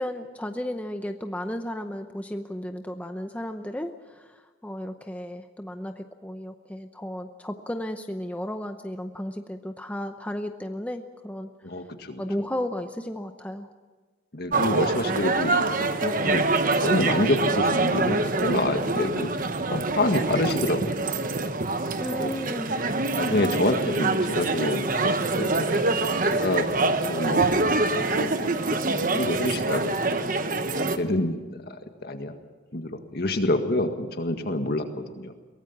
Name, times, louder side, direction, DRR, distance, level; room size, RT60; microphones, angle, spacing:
voice 1, 0.0-11.5 12.2-13.7 22.0-22.8, left 1 dB, 10° left, 6 dB, 0.7 m, -34 dB
voice 2, 11.6-12.2 14.3-19.3 19.7-21.0 22.2-22.3 23.1-27.5 28.0-28.8 29.1-30.0 30.7-31.8 32.0-32.3 32.7-35.3, left 1 dB, 55° left, 6 dB, 1.9 m, -27 dB
sound 1, 14.5-31.0, right 3 dB, 45° right, 1.1 m, -25 dB
23.0 x 18.5 x 7.3 m, 1.4 s
head